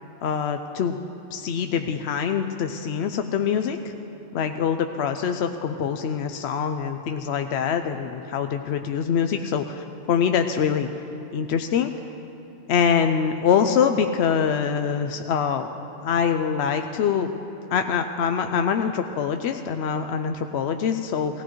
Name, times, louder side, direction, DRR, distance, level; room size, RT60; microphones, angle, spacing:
voice 1, 0.2-1.0 1.3-3.9 4.3-10.9 11.3-11.9 12.7-15.7 16.0-17.3 17.7-21.4, left 7 dB, 70° left, 6 dB, 0.8 m, -24 dB
17.5 x 16.0 x 3.1 m, 2.9 s
omnidirectional pair, 1.2 m